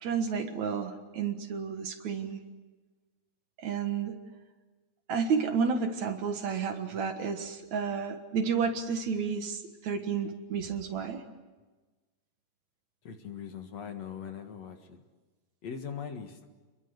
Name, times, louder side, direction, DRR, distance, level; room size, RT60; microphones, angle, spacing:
voice 1, 0.0-2.4 3.6-4.1 5.1-11.2, right 6 dB, 60° right, 6 dB, 2.7 m, -31 dB
voice 2, 13.0-15.0 15.6-16.5, left 7 dB, 55° left, 5 dB, 2.6 m, -41 dB
29.5 x 22.0 x 8.1 m, 1.3 s
omnidirectional pair, 3.9 m